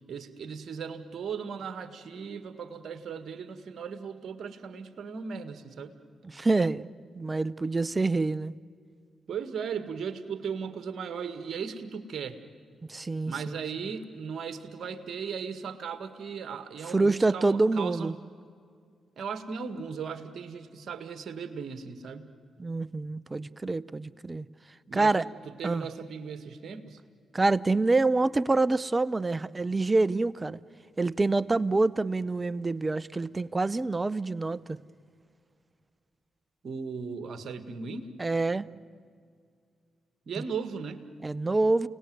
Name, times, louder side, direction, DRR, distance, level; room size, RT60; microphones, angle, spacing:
voice 1, 0.1-5.9 9.3-12.4 13.3-18.1 19.2-22.3 24.9-25.1 25.4-27.0 36.6-38.1 40.3-41.0, right 6 dB, 60° right, 1.8 m, -37 dB
voice 2, 6.2-6.9 7.1-8.5 12.9-13.6 16.9-18.1 22.6-24.5 24.9-25.3 25.6-25.9 27.3-30.6 31.0-34.8 38.2-38.7 40.4-40.5 41.2-41.9, right 3 dB, 30° right, 0.7 m, -26 dB
29.5 x 19.0 x 9.4 m
hypercardioid pair, 45°, 0 cm